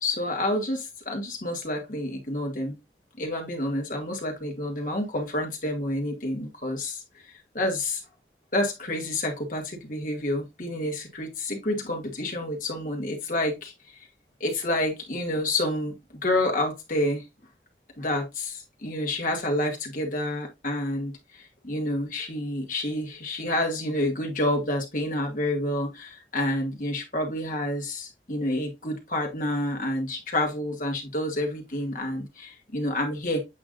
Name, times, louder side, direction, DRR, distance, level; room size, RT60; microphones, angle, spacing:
voice 1, 0.0-2.8 3.2-7.0 7.5-8.0 8.5-13.7 14.4-15.9 16.2-17.2 18.0-33.4, left 1 dB, 50° left, 2.1 m, -29 dB
8.5 x 4.8 x 2.5 m
head